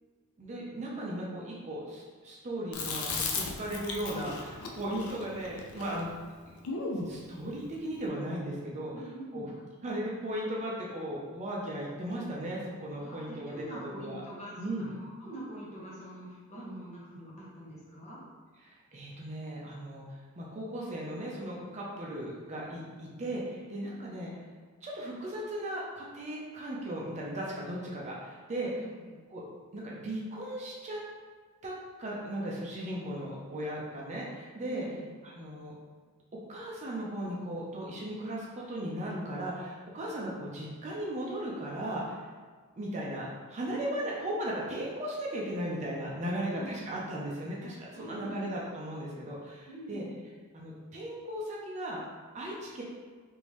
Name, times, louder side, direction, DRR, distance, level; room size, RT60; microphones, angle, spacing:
voice 1, 0.4-6.1 7.1-8.9 9.3-9.5 9.8-14.2 14.6-14.9 18.6-20.1 20.4-24.3 24.8-28.7 29.3-29.4 29.7-31.0 31.6-31.7 32.0-34.9 35.2-35.7 36.5-42.3 42.8-50.0 50.5-52.0 52.3-52.8, right 1 dB, 30° right, -4 dB, 0.5 m, -37 dB
Chewing mastication, 2.7-7.1, left 4 dB, 70° left, 0.5 m, -36 dB
voice 2, 8.9-9.6 13.0-18.2 28.7-29.1 34.7-35.0 43.8-44.3 46.4-47.0 47.9-48.6 49.7-50.1, right 1 dB, 30° left, -7 dB, 1.0 m, -45 dB
3.4 x 2.6 x 3.0 m, 1.5 s
head